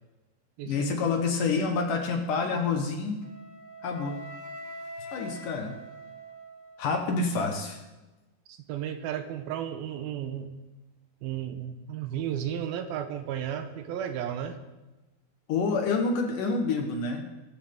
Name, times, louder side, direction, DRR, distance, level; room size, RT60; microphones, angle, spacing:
voice 1, 0.7-3.2 3.8-4.2 5.1-5.8 6.8-7.8 15.5-17.2, left 4 dB, 65° left, 3 dB, 2.5 m, -28 dB
Wind instrument woodwind instrument, 3.2-7.2, right 1 dB, 35° left, 0.7 m, -44 dB
voice 2, 8.5-10.5 11.2-14.6, right 9 dB, 80° right, 8 dB, 2.6 m, -34 dB
22.5 x 13.0 x 3.7 m, 1.1 s
omnidirectional pair, 4.6 m